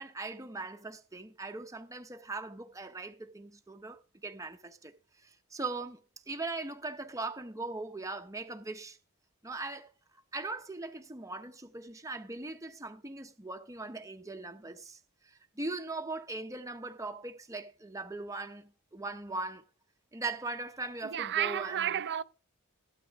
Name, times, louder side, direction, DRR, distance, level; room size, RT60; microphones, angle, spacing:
voice 1, 0.0-4.9 5.2-9.0 9.4-9.9 10.3-19.6 20.1-21.9, right 3 dB, 15° right, 0.8 m, -40 dB
voice 2, 21.0-22.2, right 10 dB, 50° right, 0.6 m, -31 dB
16.5 x 9.1 x 3.6 m
head